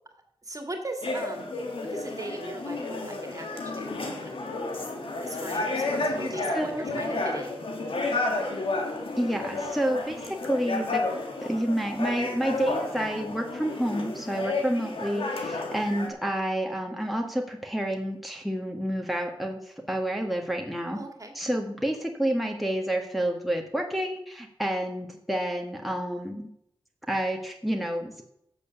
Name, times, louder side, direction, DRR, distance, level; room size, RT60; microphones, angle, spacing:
voice 1, 0.4-1.6 1.9-4.3 5.2-7.5 20.9-21.3, right 1 dB, 40° right, 5 dB, 2.2 m, -39 dB
sound 1, 1.0-16.1, left 2 dB, 75° left, 1.9 m, -31 dB
voice 2, 6.3-7.2 9.2-11.0 11.4-21.0 21.3-26.5 27.1-28.2, right 1 dB, ahead, 2 dB, 1.6 m, -29 dB
8.2 x 7.0 x 7.1 m, 0.73 s
cardioid pair, 40°, 9 cm